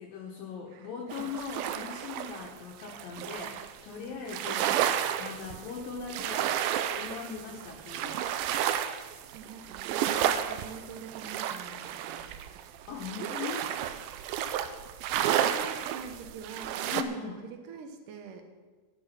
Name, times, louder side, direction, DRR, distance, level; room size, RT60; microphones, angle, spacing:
voice 1, 0.0-4.7 5.2-6.5 7.0-8.2 12.9-13.7 16.9-17.4, left 6 dB, 70° left, -1 dB, 2.7 m, -40 dB
voice 2, 0.7-1.3 9.3-12.4 15.4-18.5, right 6 dB, 65° right, 5 dB, 2.4 m, -45 dB
sound 1, 1.1-3.8 4.3-17.0, right 10 dB, 85° right, 2.1 m, -32 dB
13.0 x 9.5 x 5.9 m, 1.3 s
omnidirectional pair, 4.8 m